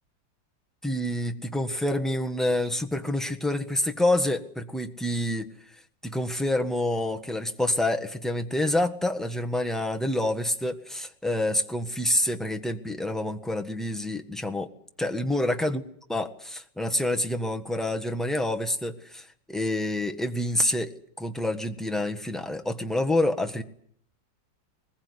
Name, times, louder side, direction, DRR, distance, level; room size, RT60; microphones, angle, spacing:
voice 1, 0.8-5.5 6.0-14.7 15.0-15.8 16.1-20.9 21.2-23.6, left 1 dB, ahead, 3 dB, 1.2 m, -27 dB
21.5 x 20.5 x 9.7 m, 0.63 s
omnidirectional pair, 2.0 m